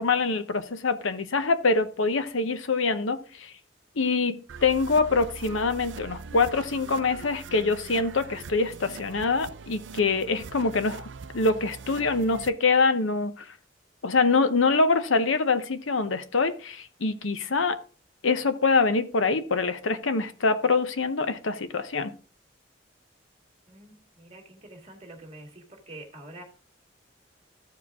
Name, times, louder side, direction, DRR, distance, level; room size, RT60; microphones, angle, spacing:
voice 1, 0.0-3.5 4.0-11.1 11.3-13.5 14.0-17.8 18.2-22.1, left 4 dB, 85° left, 0.8 m, -25 dB
sound 1, 4.5-12.5, right 5 dB, 70° right, 0.5 m, -42 dB
voice 2, 23.7-26.4, right 1 dB, 30° right, 1.9 m, -46 dB
14.0 x 4.8 x 3.5 m
head